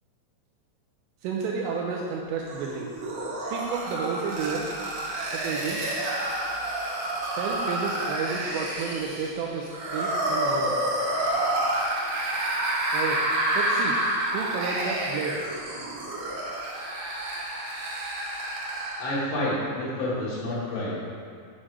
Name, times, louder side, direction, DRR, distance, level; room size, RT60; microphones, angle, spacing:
voice 1, 1.2-2.9 3.5-4.7 5.3-5.8 7.3-10.8 12.9-14.0 14.3-15.4, right 5 dB, 85° right, -1 dB, 2.6 m, -31 dB
sound 1, 2.5-19.1, right 1 dB, 65° right, 2.2 m, -29 dB
voice 2, 19.0-21.0, left 1 dB, 80° left, -7 dB, 4.7 m, -29 dB
8.8 x 6.5 x 4.9 m, 2.2 s
omnidirectional pair, 5.6 m